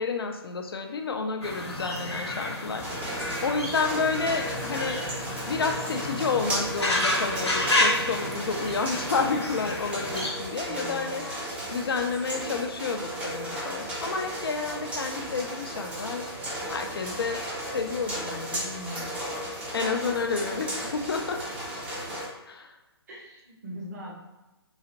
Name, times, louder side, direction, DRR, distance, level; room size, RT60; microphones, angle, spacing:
voice 1, 0.0-2.8 3.1-5.0 5.5-11.2 11.7-16.2 16.7-17.4 17.7-19.2 19.7-21.4 22.5-22.7, left 4 dB, 60° left, 4 dB, 0.5 m, -30 dB
sound 1, 1.4-10.3, left 1 dB, 85° left, 1.0 m, -30 dB
sound 2, 2.8-22.3, equal, 10° right, 0.6 m, -35 dB
voice 2, 10.7-11.2 20.5-20.6 23.1-24.1, equal, 40° right, -2 dB, 1.1 m, -41 dB
3.9 x 2.4 x 2.9 m, 1.1 s
figure-of-eight pair, 135°, 14 cm